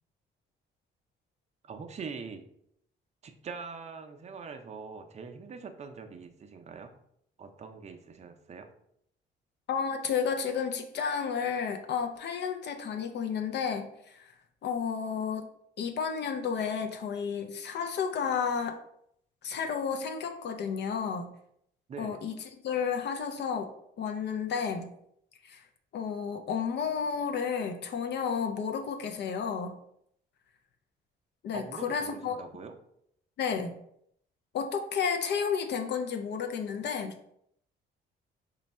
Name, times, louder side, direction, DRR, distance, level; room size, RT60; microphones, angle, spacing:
voice 1, 1.6-2.4 3.2-6.9 7.4-8.7 21.9-22.2 31.5-32.7, right 5 dB, 35° right, 5 dB, 0.5 m, -43 dB
voice 2, 9.7-14.3 14.6-15.5 15.8-18.8 19.4-21.3 22.0-22.3 22.6-23.7 24.0-24.9 25.4-25.6 25.9-29.8 31.4-32.4 33.4-33.8 34.5-37.1, left 6 dB, 60° left, 5 dB, 0.4 m, -32 dB
3.1 x 2.2 x 4.1 m, 0.71 s
cardioid pair, 90°, 20 cm